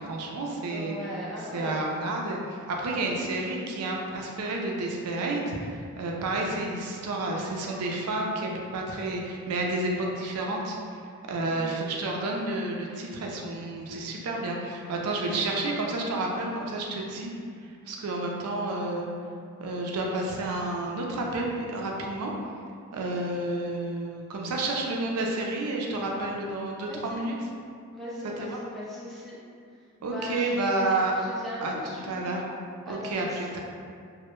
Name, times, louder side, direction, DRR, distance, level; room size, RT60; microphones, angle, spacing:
voice 1, 0.0-0.9 1.5-10.8 11.3-17.3 17.9-19.1 19.6-22.3 22.9-27.3 28.4-28.6 30.0-31.1 31.6-31.7 32.0-32.4 32.9-33.6, right 2 dB, 80° right, 0 dB, 0.4 m, -30 dB
voice 2, 0.7-1.9 11.5-11.7 26.8-27.2 27.9-29.4 30.0-32.3 32.8-33.4, left 1 dB, ahead, -8 dB, 0.4 m, -39 dB
2.1 x 2.1 x 2.9 m, 2.3 s
head